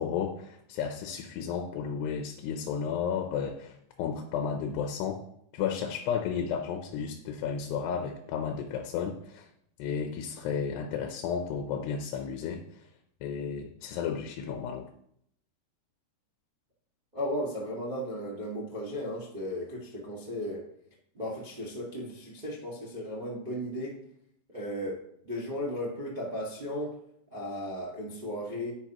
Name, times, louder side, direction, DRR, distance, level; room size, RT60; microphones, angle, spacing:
voice 1, 0.0-5.2 5.5-9.5 9.8-12.9 13.2-14.9, left 7 dB, 85° left, 5 dB, 2.9 m, -33 dB
voice 2, 17.1-20.6 21.1-24.0 24.5-27.0 27.3-28.7, equal, 60° right, -5 dB, 0.4 m, -35 dB
10.5 x 9.4 x 3.0 m, 0.71 s
omnidirectional pair, 4.7 m